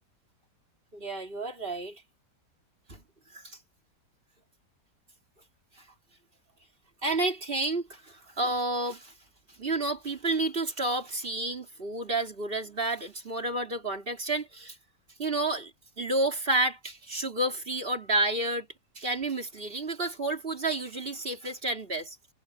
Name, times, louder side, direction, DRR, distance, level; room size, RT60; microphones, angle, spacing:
voice 1, 0.9-2.0 2.9-3.0 3.3-3.6 7.0-9.1 9.6-14.8 15.2-15.7 16.0-18.7 18.9-22.2, right 2 dB, 35° right, 3.4 m, -30 dB
omnidirectional pair, 1.8 m